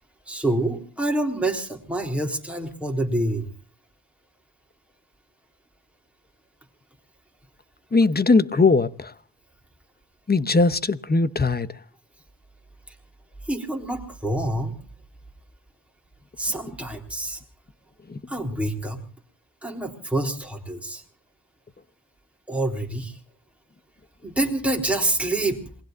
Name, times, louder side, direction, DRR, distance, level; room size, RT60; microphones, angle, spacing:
voice 1, 0.3-3.5 12.9-13.0 13.5-14.8 16.4-17.4 18.3-19.0 19.6-21.0 22.5-23.2 24.2-25.6, right 1 dB, 5° right, 3.6 m, -27 dB
voice 2, 7.9-9.1 10.3-11.8 18.1-18.2, left 3 dB, 25° left, 0.9 m, -20 dB
27.5 x 20.5 x 2.6 m
wide cardioid pair, 110°, 40 cm